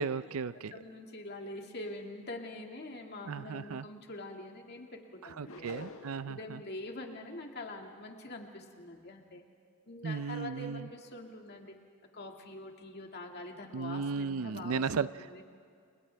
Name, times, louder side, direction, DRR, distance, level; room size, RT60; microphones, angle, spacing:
voice 1, 0.0-0.7 3.3-3.9 5.2-6.6 10.0-10.9 13.7-15.1, right 5 dB, 75° right, 15 dB, 0.5 m, -35 dB
voice 2, 0.5-5.9 6.3-9.4 9.9-11.7 12.1-15.4, left 2 dB, 50° left, 2 dB, 2.1 m, -45 dB
sound 1, 5.5-6.4, left 3 dB, 70° left, 1.7 m, -47 dB
30.0 x 29.0 x 3.4 m, 2.3 s
head